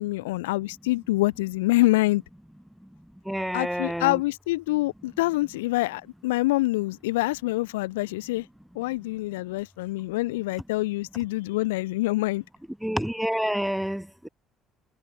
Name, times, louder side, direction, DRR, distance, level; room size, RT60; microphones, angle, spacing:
voice 1, 0.0-2.2 3.5-8.5 8.8-12.4, left 19 dB, 80° left, 0.4 m, -26 dB
voice 2, 3.3-4.2 12.8-14.3, equal, ahead, 0.5 m, -28 dB
hypercardioid pair, 55°, 0 cm